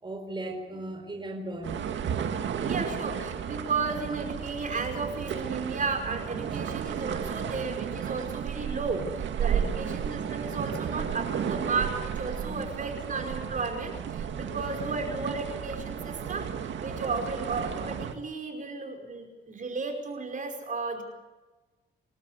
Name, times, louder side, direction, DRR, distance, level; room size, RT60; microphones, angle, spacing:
voice 1, 0.0-1.9 6.5-6.6 9.5-9.7 12.4-12.6, right 1 dB, 25° right, 3 dB, 4.5 m, -37 dB
sound 1, 1.6-18.1, right 8 dB, 70° right, 2.0 m, -33 dB
voice 2, 2.5-16.5 16.8-21.0, right 4 dB, 40° right, 3 dB, 5.3 m, -34 dB
29.0 x 13.0 x 8.1 m, 1.2 s
cardioid pair, 90°, 20 cm